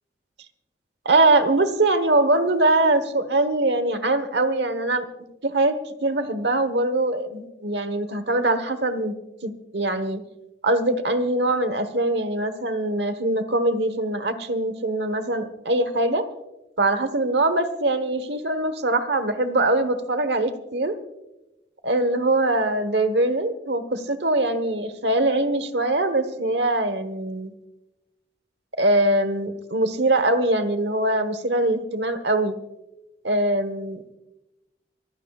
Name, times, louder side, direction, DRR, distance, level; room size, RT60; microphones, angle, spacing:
voice 1, 1.0-5.1 5.4-5.7 6.0-9.2 9.4-10.2 10.6-16.2 16.8-21.0 21.8-27.5 28.8-32.5 33.2-34.2, right 2 dB, 65° right, 12 dB, 1.2 m, -22 dB
25.5 x 16.0 x 2.4 m, 0.98 s
head